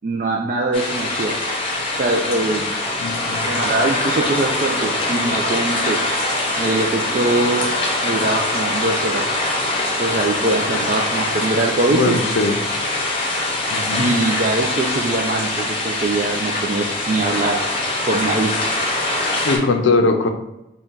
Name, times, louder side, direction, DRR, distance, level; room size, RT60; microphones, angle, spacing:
voice 1, 0.0-1.3 2.0-2.8 3.4-6.0 6.6-7.6 8.0-9.3 10.0-12.2 14.0-17.6 18.0-18.6, right 2 dB, 45° right, 0 dB, 0.3 m, -22 dB
sound 1, 0.7-19.6, left 2 dB, 30° left, 0.7 m, -23 dB
voice 2, 3.0-3.5 10.8-10.9 11.9-12.6 13.7-14.1 19.4-20.3, left 3 dB, 85° left, 5 dB, 0.5 m, -20 dB
4.1 x 2.2 x 3.7 m, 0.89 s
head